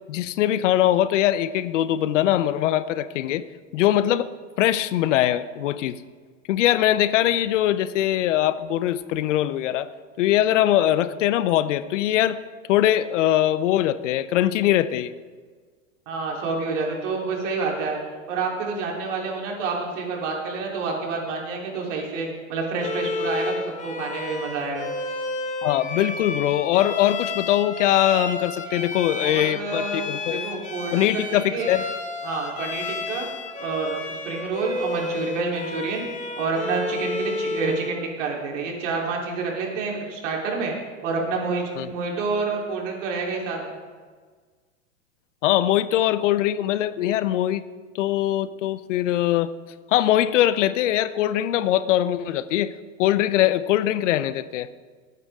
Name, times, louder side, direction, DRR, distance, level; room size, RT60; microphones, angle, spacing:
voice 1, 0.1-3.4 3.7-4.3 4.6-6.0 6.5-9.9 10.2-12.4 12.7-15.1 25.6-30.4 30.9-31.8 41.8-41.9 45.4-47.6 47.9-49.5 49.9-52.7 53.0-54.7, left 12 dB, 65° left, 15 dB, 0.7 m, -22 dB
voice 2, 16.1-18.0 18.3-24.9 29.2-31.7 32.2-33.3 33.6-36.0 36.4-40.7 41.0-43.8, right 4 dB, 65° right, -1 dB, 3.8 m, -28 dB
Bowed string instrument, 22.8-38.0, left 3 dB, 20° left, 1.4 m, -31 dB
19.5 x 9.5 x 3.7 m, 1.5 s
hypercardioid pair, 120°, 39 cm